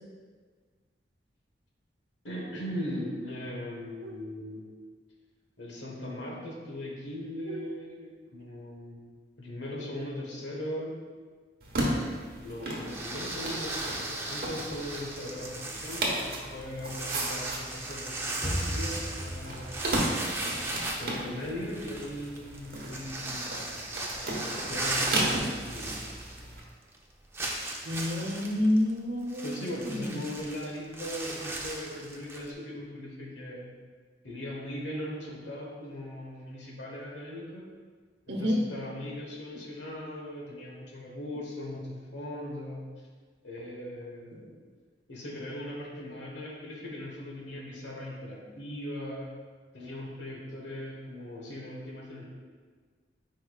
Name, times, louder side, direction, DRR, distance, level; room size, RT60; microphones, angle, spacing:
voice 1, 2.2-4.7 5.6-9.0 9.4-11.0 12.4-19.7 20.6-23.5 24.4-25.9 29.4-33.7 34.2-37.6 38.3-42.8 43.4-44.6 45.1-49.3 49.7-52.2, left 1 dB, 80° left, -2 dB, 1.3 m, -39 dB
sound 1, 11.6-26.6, right 1 dB, 50° right, 1.2 m, -35 dB
sound 2, 12.9-26.6 26.9-27.0 27.3-32.5, right 2 dB, 15° right, 0.5 m, -37 dB
sound 3, 18.4-21.5, equal, 15° left, 0.9 m, -37 dB
voice 2, 27.8-30.2 38.3-38.6, left 1 dB, 75° right, 1 dB, 1.0 m, -29 dB
9.7 x 4.5 x 2.4 m, 1.5 s
head